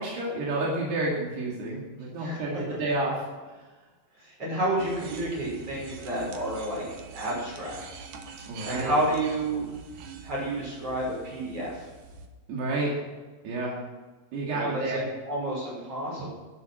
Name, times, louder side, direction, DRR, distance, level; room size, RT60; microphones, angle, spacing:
voice 1, 0.0-3.5 8.5-9.0 12.5-13.0 13.4-13.7 14.3-15.0, right 2 dB, 80° right, -4 dB, 4.6 m, -30 dB
voice 2, 2.2-2.6 4.2-6.8 7.1-7.8 8.6-9.6 10.2-11.9 14.5-16.3, right 1 dB, 35° right, -4 dB, 7.0 m, -30 dB
sound 1, 4.8-12.3, right 4 dB, 65° right, 2.4 m, -45 dB
12.5 x 11.0 x 6.6 m, 1.3 s
omnidirectional pair, 4.7 m